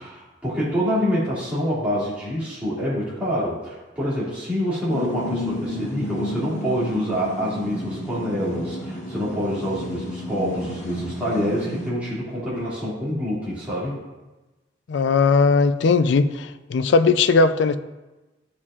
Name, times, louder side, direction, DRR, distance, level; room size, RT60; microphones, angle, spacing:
voice 1, 0.0-14.0, equal, 5° right, -10 dB, 2.3 m, -26 dB
sound 1, 4.9-11.9, left 1 dB, 40° left, 1.4 m, -32 dB
voice 2, 14.9-17.8, left 4 dB, 65° left, 11 dB, 0.4 m, -18 dB
14.0 x 4.8 x 2.4 m, 1.1 s
head